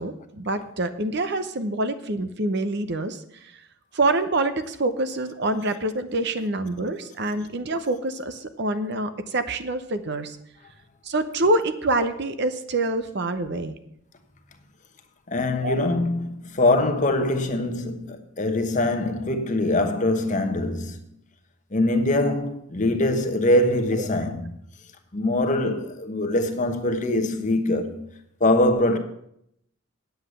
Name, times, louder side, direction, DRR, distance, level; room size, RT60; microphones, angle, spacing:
voice 1, 0.0-3.5 3.9-10.4 11.0-13.7 15.6-15.9 24.0-24.1, right 2 dB, 55° right, 0.8 m, -26 dB
voice 2, 15.3-21.0 21.7-24.4 25.1-28.1 28.4-29.0, left 1 dB, 35° left, 1.1 m, -23 dB
9.6 x 8.0 x 6.6 m
head